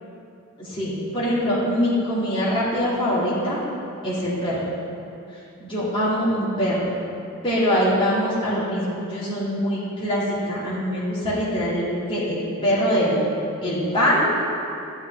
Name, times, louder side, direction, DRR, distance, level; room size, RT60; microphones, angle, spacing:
voice 1, 0.6-3.6 4.0-4.7 5.6-6.9 7.4-13.2 13.6-14.3, equal, 25° left, -9 dB, 2.4 m, -23 dB
11.5 x 8.9 x 3.5 m, 2.6 s
head